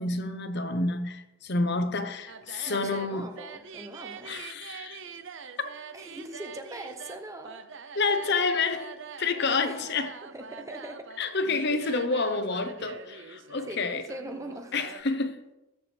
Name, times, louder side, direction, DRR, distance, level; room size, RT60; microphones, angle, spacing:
voice 1, 0.0-3.3 4.2-5.0 5.6-5.7 8.0-10.1 11.2-14.0 14.7-15.4, left 3 dB, 50° left, 0.9 m, -29 dB
sound 1, 2.3-15.0, right 6 dB, 60° right, 0.7 m, -45 dB
voice 2, 2.7-4.4 5.9-7.6 9.6-9.9 10.2-11.1 13.7-14.7, right 1 dB, 15° right, 0.7 m, -41 dB
20.5 x 6.9 x 3.4 m
head